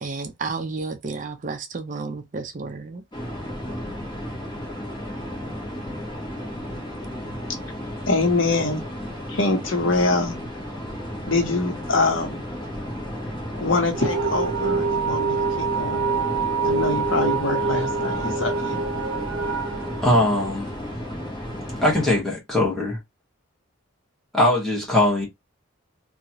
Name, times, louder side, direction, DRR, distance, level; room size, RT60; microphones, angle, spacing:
voice 1, 0.0-3.0, right 4 dB, 40° right, 0.4 m, -31 dB
sound 1, 3.1-22.2, equal, 20° left, 1.0 m, -33 dB
voice 2, 8.1-8.8 9.3-10.3 11.3-12.4 13.6-16.1 16.6-18.8, left 3 dB, 70° left, 1.0 m, -24 dB
sound 2, 13.9-20.9, right 4 dB, 80° right, 0.6 m, -25 dB
voice 3, 20.0-20.7 21.8-23.0 24.3-25.3, left 1 dB, ahead, 1.2 m, -20 dB
2.9 x 2.4 x 2.8 m
head